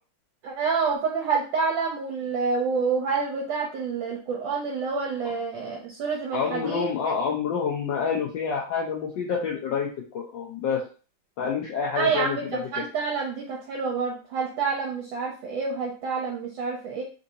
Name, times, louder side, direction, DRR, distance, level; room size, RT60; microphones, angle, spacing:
voice 1, 0.4-6.9 11.9-17.0, right 5 dB, 75° right, -1 dB, 1.3 m, -28 dB
voice 2, 6.3-9.9 10.1-10.8 11.4-12.8, left 6 dB, 70° left, -2 dB, 1.2 m, -28 dB
3.7 x 2.6 x 2.7 m, 0.37 s
omnidirectional pair, 2.2 m